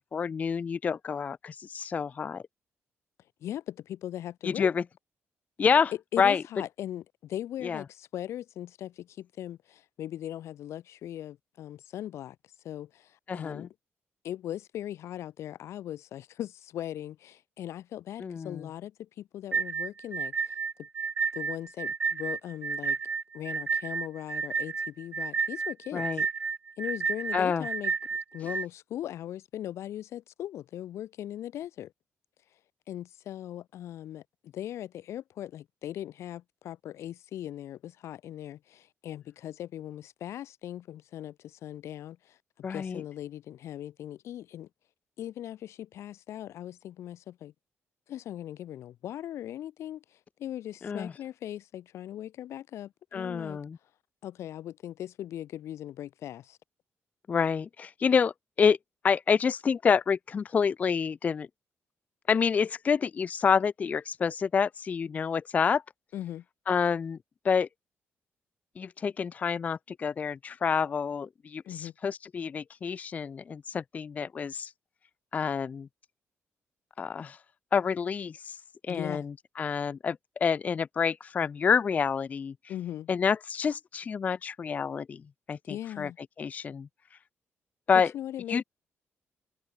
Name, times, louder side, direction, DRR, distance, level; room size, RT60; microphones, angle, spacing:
voice 1, 0.1-2.4 4.4-4.8 5.6-6.4 7.6-7.8 13.3-13.7 18.2-18.6 25.9-26.2 27.3-27.7 42.6-43.0 50.8-51.1 53.1-53.8 57.3-58.3 58.6-58.8 59.0-61.5 62.3-65.8 66.7-67.2 67.4-67.7 68.8-74.7 75.3-75.9 77.0-77.4 77.7-78.6 78.9-82.5 83.1-85.2 85.5-86.1 86.4-86.9 87.9-88.1 88.5-88.6, left 6 dB, 35° left, 0.4 m, -28 dB
voice 2, 3.4-4.7 6.1-12.4 12.6-13.7 14.2-20.5 20.8-20.9 21.3-23.0 23.3-26.2 26.8-27.9 28.3-31.9 32.9-44.7 45.2-47.5 48.1-50.0 50.4-53.6 54.2-56.6 66.1-66.4 71.7-71.9 78.9-79.3 82.7-83.1 85.7-86.2 88.1-88.6, left 12 dB, 75° left, 1.5 m, -39 dB
sound 1, 19.5-28.7, right 5 dB, 30° right, 0.4 m, -31 dB
cardioid pair, 145°, 5 cm